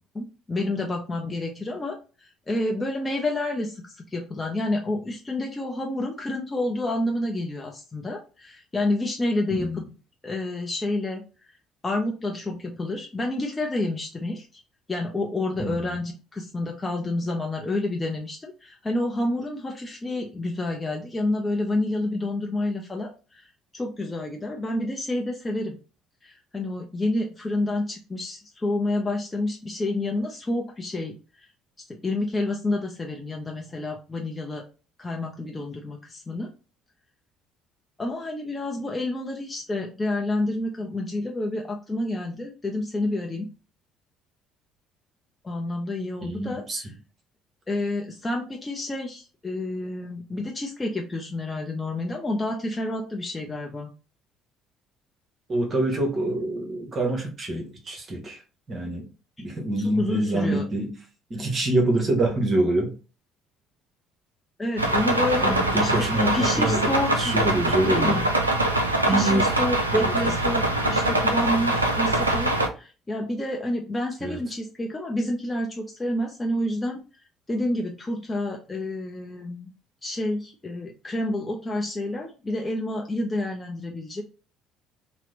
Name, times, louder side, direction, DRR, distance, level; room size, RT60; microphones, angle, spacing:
voice 1, 0.1-9.8 10.2-11.2 11.8-14.6 14.9-23.5 23.7-25.8 26.2-31.5 31.9-34.6 35.0-36.5 38.0-43.5 45.4-46.9 47.7-53.9 60.0-60.7 64.6-67.4 67.8-68.3 69.1-77.0 77.5-79.7 80.0-84.2, left 1 dB, 20° left, 1 dB, 0.5 m, -29 dB
voice 2, 15.6-15.9 46.2-46.8 55.5-58.4 58.7-59.0 59.4-60.9 61.3-62.9 65.4-68.2 69.1-69.5 70.0-70.4 74.2-74.4, right 1 dB, 35° right, 1 dB, 0.9 m, -26 dB
sound 1, 64.8-72.7, right 1 dB, 90° right, 0.3 m, -23 dB
2.9 x 2.0 x 3.7 m, 0.35 s
figure-of-eight pair, 55°, 0 cm